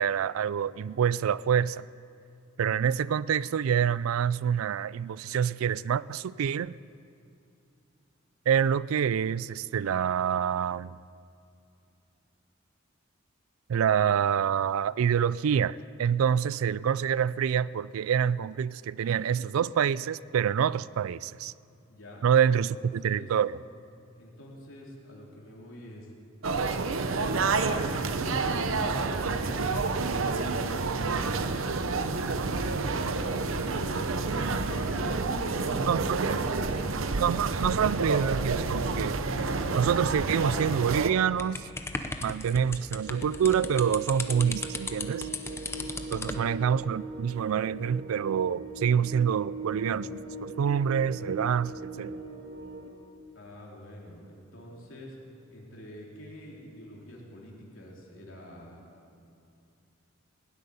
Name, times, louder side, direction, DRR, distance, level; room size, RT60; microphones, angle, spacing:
voice 1, 0.0-1.8 2.6-6.7 8.5-11.0 13.7-21.5 22.2-23.6 35.9-36.2 37.2-39.2 39.7-41.7 42.2-45.3 46.1-52.2, right 8 dB, 90° right, 20 dB, 0.4 m, -26 dB
voice 2, 21.9-23.3 24.1-26.1 26.9-31.2 32.2-32.7 33.0-37.0 46.2-46.5 53.3-55.2 55.5-58.8, equal, 70° left, -3 dB, 3.4 m, -45 dB
sound 1, 26.4-41.1, right 3 dB, 75° right, 0.8 m, -29 dB
sound 2, 41.4-46.4, left 3 dB, 10° left, 0.7 m, -36 dB
sound 3, 42.9-52.9, right 3 dB, 55° right, 2.2 m, -40 dB
18.0 x 7.9 x 9.9 m, 2.6 s
head